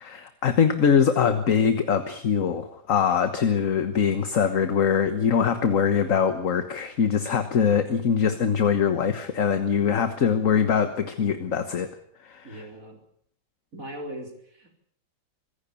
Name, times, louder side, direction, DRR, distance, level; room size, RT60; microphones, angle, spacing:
voice 1, 0.0-11.9 12.2-12.6, left 7 dB, 50° left, 9 dB, 1.6 m, -23 dB
voice 2, 12.4-13.0 13.7-14.8, right 1 dB, 50° right, 3 dB, 4.7 m, -39 dB
25.0 x 16.0 x 7.0 m, 0.65 s
omnidirectional pair, 1.8 m